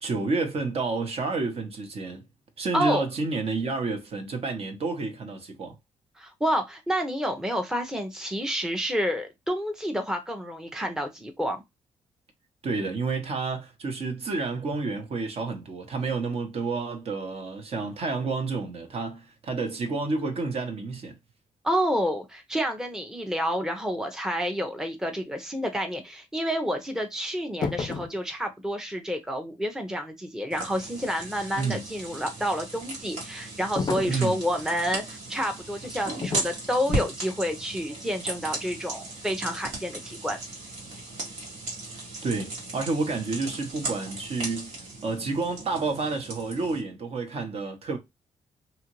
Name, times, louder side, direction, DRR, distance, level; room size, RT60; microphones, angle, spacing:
voice 1, 0.0-2.2 2.6-5.7 12.6-21.1 31.6-31.8 34.1-34.4 41.9-48.0, right 3 dB, 55° right, 0.9 m, -30 dB
voice 2, 2.7-3.0 6.2-11.6 21.6-40.4, equal, 5° right, 0.6 m, -29 dB
sound 1, 27.6-28.2 33.8-34.3 36.2-36.5 36.9-37.2, left 4 dB, 35° left, 0.4 m, -31 dB
sound 2, 30.5-46.8, right 2 dB, 80° right, 1.5 m, -36 dB
2.8 x 2.4 x 2.9 m
cardioid pair, 80°, 12 cm